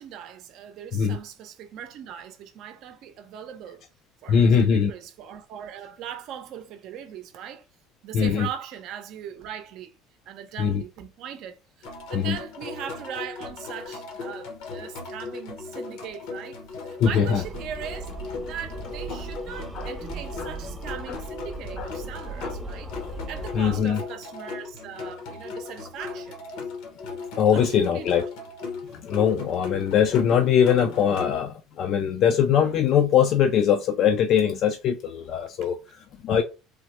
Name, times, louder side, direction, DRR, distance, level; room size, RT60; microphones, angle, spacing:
voice 1, 0.0-3.9 4.2-7.6 8.0-9.9 10.2-18.1 18.4-22.9 23.3-26.4 27.5-28.2 29.1-29.2, right 9 dB, 60° right, 0.6 m, -39 dB
voice 2, 4.3-4.9 8.1-8.5 10.6-10.8 12.1-12.4 17.0-17.4 19.1-19.2 19.7-19.9 20.4-20.5 21.1-21.2 21.8-21.9 22.4-22.5 23.5-24.0 27.4-28.2 28.9-36.4, left 8 dB, 55° left, 0.3 m, -22 dB
sound 1, 11.8-31.3, left 4 dB, 80° left, 0.9 m, -37 dB
sound 2, 17.3-23.8, right 2 dB, ahead, 0.5 m, -38 dB
3.2 x 2.1 x 2.9 m
cardioid pair, 120°, 0 cm